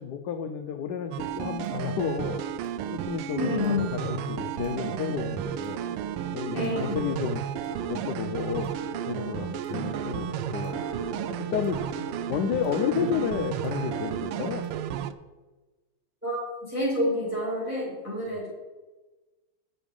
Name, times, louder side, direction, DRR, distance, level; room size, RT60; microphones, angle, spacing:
voice 1, 0.0-2.4 2.9-5.8 6.3-7.4 7.9-8.7 9.0-10.8 11.4-11.8 12.3-14.6, left 8 dB, 75° left, 8 dB, 1.0 m, -31 dB
sound 1, 1.1-15.1, right 10 dB, 85° right, 1.5 m, -33 dB
sound 2, 1.2-14.7, right 2 dB, 60° right, 2.6 m, -41 dB
voice 2, 3.3-3.9 6.5-7.0 16.2-18.5, left 1 dB, 5° right, -6 dB, 3.3 m, -28 dB
9.7 x 8.4 x 5.3 m, 1.2 s
omnidirectional pair, 2.4 m